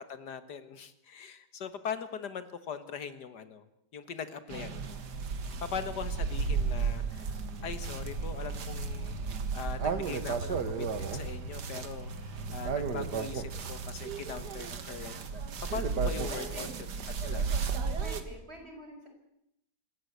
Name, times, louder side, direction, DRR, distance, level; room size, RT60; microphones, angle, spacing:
voice 1, 0.1-3.7 3.9-5.0 5.6-7.3 7.6-9.1 9.5-15.5 15.7-16.7 17.2-17.5, left 6 dB, 75° left, 12 dB, 1.9 m, -41 dB
sound 1, 4.5-18.2, right 5 dB, 75° right, 2.1 m, -34 dB
voice 2, 15.9-16.8 17.4-19.1, right 1 dB, 35° right, 3 dB, 5.5 m, -46 dB
26.5 x 15.5 x 8.1 m, 0.79 s
omnidirectional pair, 1.8 m